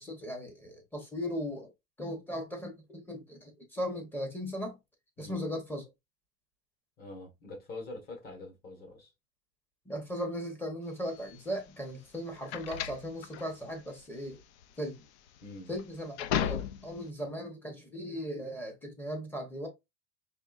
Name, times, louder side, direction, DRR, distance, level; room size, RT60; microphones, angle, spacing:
voice 1, 0.0-1.7 2.0-4.8 5.2-5.9 9.9-14.4 14.8-15.0 15.7-19.7, equal, 5° left, 0.8 m, -37 dB
voice 2, 7.0-9.1 15.4-15.7, left 2 dB, 30° left, 1.3 m, -45 dB
sound 1, 11.1-17.1, left 9 dB, 90° left, 0.6 m, -36 dB
4.3 x 3.2 x 2.4 m
cardioid pair, 165°, 33 cm